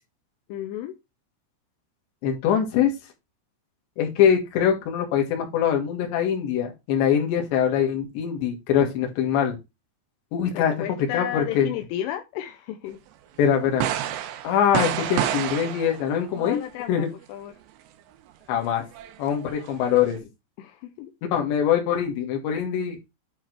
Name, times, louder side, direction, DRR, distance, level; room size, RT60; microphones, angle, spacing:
voice 1, 0.5-0.9 10.5-13.0 16.3-17.5 20.6-21.1, left 12 dB, 85° left, 3.2 m, -33 dB
voice 2, 2.2-2.9 4.0-9.6 10.3-10.7 11.1-11.7 13.4-13.9 14.4-16.6 16.9-17.1 18.5-18.9 19.2-20.2 21.3-23.0, left 8 dB, 65° left, 3.7 m, -23 dB
sound 1, 13.4-13.5 13.8-16.6 18.8-20.2, right 11 dB, 80° right, 2.5 m, -29 dB
10.5 x 3.5 x 4.6 m
omnidirectional pair, 5.9 m